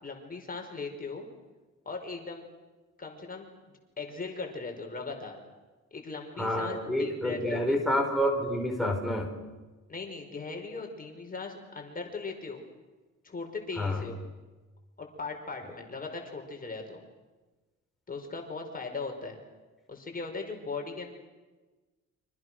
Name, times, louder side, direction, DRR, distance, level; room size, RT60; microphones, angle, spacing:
voice 1, 0.0-1.3 1.9-2.4 3.0-3.5 4.0-5.4 5.9-7.8 9.9-12.6 13.2-14.2 15.0-17.0 18.1-19.4 19.9-21.1, left 4 dB, 30° left, 3 dB, 5.4 m, -38 dB
voice 2, 6.4-9.3 13.8-14.0, equal, ahead, 0 dB, 5.2 m, -28 dB
29.5 x 25.5 x 6.4 m, 1.2 s
cardioid pair, 90°, 30 cm